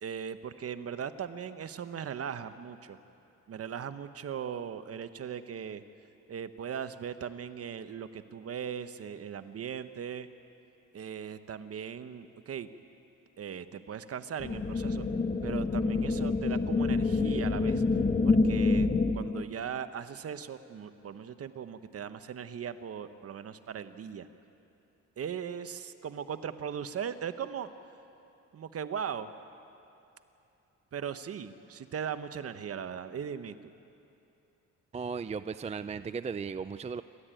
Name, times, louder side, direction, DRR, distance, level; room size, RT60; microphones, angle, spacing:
voice 1, 0.0-3.0 3.5-5.8 6.3-10.3 10.9-12.7 13.4-15.0 15.4-17.8 18.2-24.3 25.2-27.7 28.5-29.3 30.9-33.7, right 8 dB, 50° right, 11 dB, 1.1 m, -38 dB
sound 1, 14.4-19.4, left 3 dB, 30° left, 1.0 m, -27 dB
voice 2, 34.9-37.0, right 5 dB, 20° right, 13 dB, 0.4 m, -36 dB
28.0 x 13.0 x 9.1 m, 2.8 s
cardioid pair, 90°, 30 cm